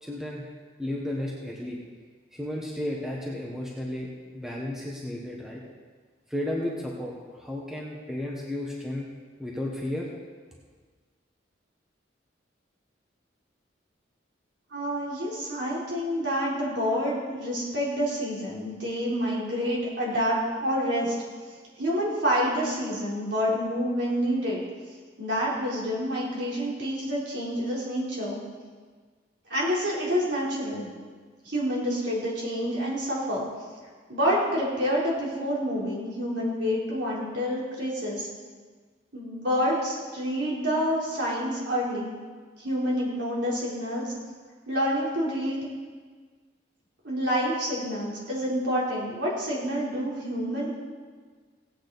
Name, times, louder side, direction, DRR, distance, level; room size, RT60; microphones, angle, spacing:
voice 1, 0.0-0.5 0.8-1.8 2.3-4.1 4.3-5.6 6.3-9.1 9.4-10.1, left 1 dB, 5° right, -3 dB, 1.2 m, -33 dB
voice 2, 14.7-21.2 21.8-24.6 25.2-28.4 29.5-30.9 31.4-33.5 34.1-38.3 39.1-42.2 42.6-44.1 44.7-45.6 47.0-50.7, equal, 65° right, -5 dB, 3.7 m, -28 dB
17.5 x 8.7 x 4.1 m, 1.5 s
head